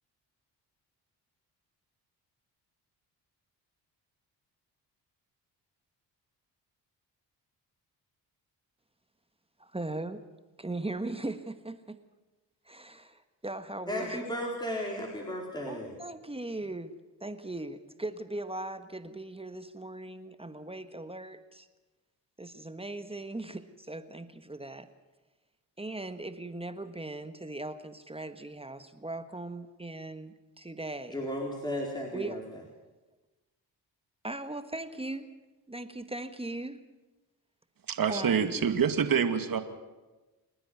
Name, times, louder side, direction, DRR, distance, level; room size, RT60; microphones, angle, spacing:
voice 1, 9.6-10.2 10.6-12.0 12.6-14.2 15.6-21.7 22.4-24.9 25.8-31.2 32.1-32.4 34.2-35.3 35.7-36.8 38.1-38.6, right 2 dB, 15° right, 10 dB, 1.3 m, -39 dB
voice 2, 13.9-16.0 31.1-32.4, equal, 10° left, -1 dB, 4.3 m, -34 dB
voice 3, 37.9-39.6, right 7 dB, 55° right, 9 dB, 2.2 m, -26 dB
28.0 x 10.5 x 9.4 m, 1.2 s
cardioid pair, 75°, 42 cm